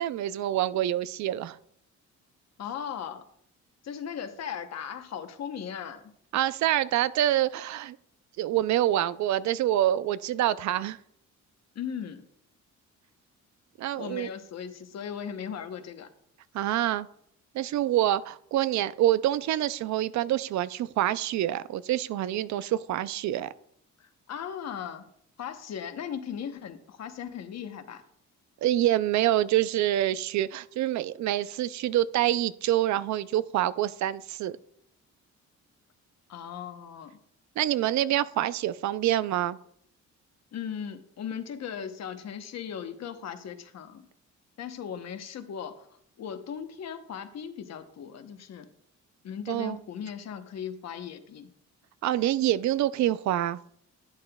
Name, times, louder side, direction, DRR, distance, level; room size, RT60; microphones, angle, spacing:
voice 1, 0.0-1.6 6.3-8.0 8.4-11.0 13.8-14.3 16.5-17.1 17.5-23.5 28.6-34.6 37.6-39.6 49.5-49.8 52.0-53.6, right 13 dB, 70° right, 16 dB, 0.5 m, -26 dB
voice 2, 2.6-3.3 3.8-6.1 11.7-12.2 13.9-16.1 24.0-25.1 25.4-28.0 36.3-37.2 40.5-44.1 44.6-45.9 46.2-48.7 49.2-51.5, left 8 dB, 60° left, 8 dB, 0.9 m, -38 dB
11.5 x 8.7 x 2.3 m, 0.69 s
cardioid pair, 90°, 30 cm